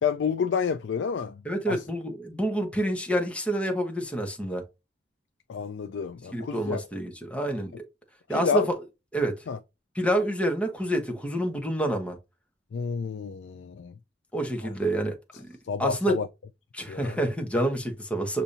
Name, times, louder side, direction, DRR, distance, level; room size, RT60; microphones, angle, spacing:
voice 1, 0.0-1.4 1.7-1.8 5.5-6.8 8.3-8.7 9.5-9.6 12.7-13.9 14.6-14.7 15.7-16.3 16.9-17.2, left 6 dB, 80° left, 0.4 m, -29 dB
voice 2, 1.4-4.6 6.3-7.8 8.3-8.6 9.1-9.4 9.9-12.2 14.3-16.2 16.7-18.4, right 1 dB, 5° left, 1.1 m, -28 dB
6.8 x 2.6 x 2.7 m
head